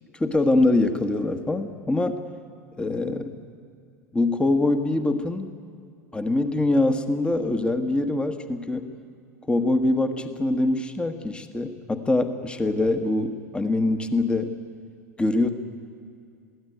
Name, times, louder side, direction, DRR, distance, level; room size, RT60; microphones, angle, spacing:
voice 1, 0.1-2.2 2.8-3.4 4.1-5.5 6.1-8.9 9.5-14.5 15.2-15.5, left 2 dB, 10° left, 8 dB, 1.4 m, -24 dB
22.0 x 16.5 x 9.3 m, 2.3 s
figure-of-eight pair, 80°, 9 cm